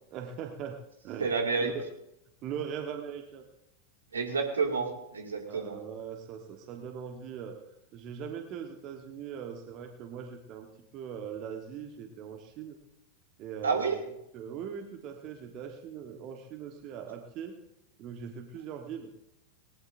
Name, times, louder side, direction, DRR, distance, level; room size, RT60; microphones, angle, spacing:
voice 1, 0.1-0.8 1.0-1.3 1.6-1.8 2.4-3.5 5.5-7.6 7.9-10.7 10.9-12.8 13.4-13.9 14.3-17.5 18.0-19.1, right 8 dB, 40° right, 4 dB, 1.4 m, -40 dB
voice 2, 1.2-1.7 4.1-5.8 13.6-14.0, right 5 dB, 70° right, 3 dB, 2.3 m, -29 dB
19.5 x 19.0 x 2.7 m, 0.83 s
figure-of-eight pair, 90°, 0 cm